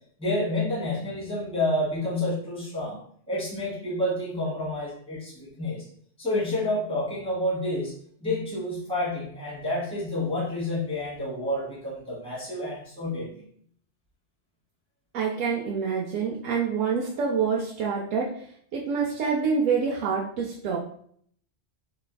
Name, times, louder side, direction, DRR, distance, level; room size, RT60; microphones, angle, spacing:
voice 1, 0.2-3.0 3.3-5.8 6.2-13.4, left 1 dB, 5° left, -6 dB, 1.2 m, -29 dB
voice 2, 15.1-18.4 18.7-20.8, right 5 dB, 80° right, -3 dB, 0.9 m, -26 dB
4.2 x 3.2 x 2.2 m, 0.62 s
omnidirectional pair, 1.3 m